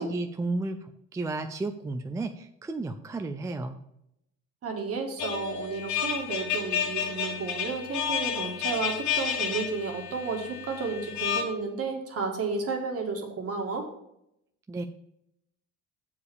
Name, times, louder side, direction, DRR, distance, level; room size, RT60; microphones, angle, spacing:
voice 1, 0.0-3.8 14.7-14.8, right 2 dB, 10° right, 7 dB, 0.3 m, -33 dB
voice 2, 4.6-13.8, right 4 dB, 50° right, 2 dB, 1.8 m, -32 dB
sound 1, 5.2-11.4, left 8 dB, 60° left, 1.1 m, -31 dB
6.9 x 4.8 x 6.3 m, 0.79 s
cardioid pair, 130°, 31 cm